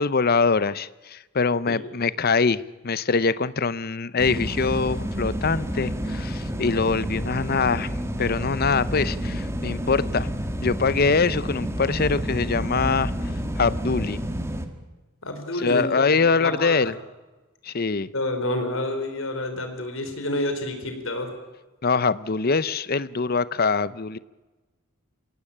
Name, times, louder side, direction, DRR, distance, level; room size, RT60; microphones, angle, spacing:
voice 1, 0.0-7.9 8.2-10.3 10.6-13.1 13.6-14.2 15.6-16.9 17.6-18.1 21.8-24.2, left 4 dB, 45° left, 17 dB, 0.7 m, -23 dB
sound 1, 4.2-14.7, equal, 15° right, 1.9 m, -29 dB
voice 2, 15.2-16.0 16.3-16.9 18.1-21.3, left 1 dB, 70° left, 6 dB, 4.4 m, -29 dB
25.5 x 17.5 x 8.6 m, 1.2 s
head